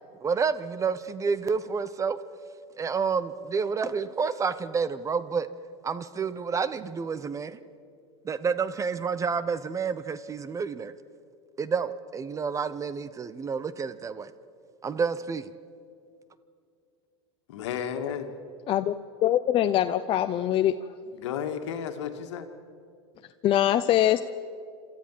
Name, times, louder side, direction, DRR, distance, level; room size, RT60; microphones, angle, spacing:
voice 1, 0.2-2.2 2.8-5.5 5.8-7.6 8.2-10.9 11.6-14.3 14.8-15.5, right 5 dB, 20° right, 15 dB, 0.8 m, -29 dB
voice 2, 17.5-18.3 21.1-22.5, left 8 dB, 75° left, 7 dB, 2.0 m, -33 dB
voice 3, 19.2-20.7 23.4-24.2, left 12 dB, 35° left, 10 dB, 0.6 m, -23 dB
27.0 x 13.5 x 7.5 m, 2.4 s
supercardioid pair, 115°, 15 cm